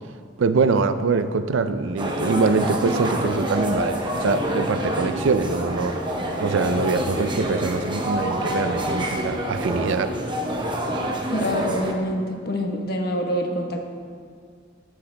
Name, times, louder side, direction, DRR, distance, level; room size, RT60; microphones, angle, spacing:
voice 1, 0.4-5.9 6.4-10.1, right 4 dB, 75° right, 11 dB, 0.4 m, -23 dB
sound 1, 2.0-11.9, equal, 25° right, 0.8 m, -27 dB
voice 2, 11.3-13.9, equal, 55° left, 2 dB, 1.1 m, -26 dB
13.5 x 10.0 x 2.2 m, 2.1 s
head